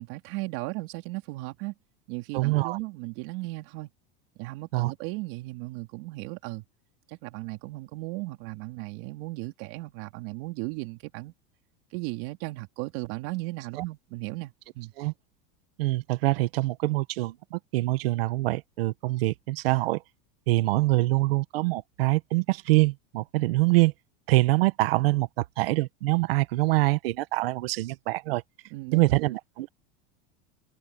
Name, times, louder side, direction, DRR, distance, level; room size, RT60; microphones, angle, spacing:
voice 1, 0.0-1.7 2.1-3.9 4.4-6.6 7.1-11.3 11.9-14.9 28.7-29.2, right 22 dB, 60° right, 3.6 m, -36 dB
voice 2, 2.3-2.8 4.7-4.9 15.0-15.1 15.8-20.0 20.5-23.9 24.3-28.4 28.9-29.7, right 20 dB, 80° right, 1.4 m, -25 dB
supercardioid pair, 130°, 29 cm